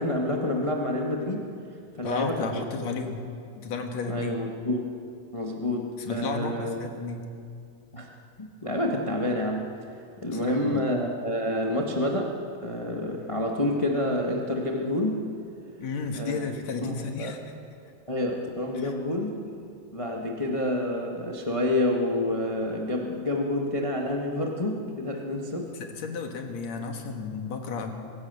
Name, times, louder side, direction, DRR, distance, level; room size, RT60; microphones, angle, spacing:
voice 1, 0.0-1.5 2.0-2.6 4.1-4.8 5.3-6.8 7.9-8.1 8.4-9.7 10.2-12.3 12.6-15.2 16.1-16.4 16.8-16.9 17.2-17.3 18.1-19.4 19.9-25.7, left 1 dB, 35° left, 0 dB, 0.5 m, -28 dB
voice 2, 2.0-3.2 3.5-4.4 6.0-7.3 10.3-10.8 15.8-17.4 18.8-18.9 25.8-27.9, left 4 dB, 60° left, 4 dB, 2.7 m, -33 dB
24.5 x 16.0 x 6.9 m, 2.4 s
omnidirectional pair, 3.8 m